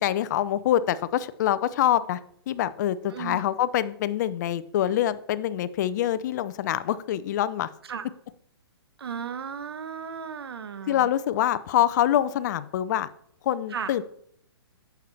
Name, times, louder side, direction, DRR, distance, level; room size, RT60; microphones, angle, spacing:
voice 1, 0.0-2.2 2.5-7.7 10.9-13.1 13.4-14.0, left 11 dB, 45° left, 16 dB, 0.5 m, -25 dB
voice 2, 3.1-3.4 7.9-8.1 9.0-11.1 13.7-13.9, right 7 dB, 70° right, 11 dB, 1.0 m, -35 dB
9.2 x 7.0 x 3.3 m, 0.67 s
hypercardioid pair, 135°, 13 cm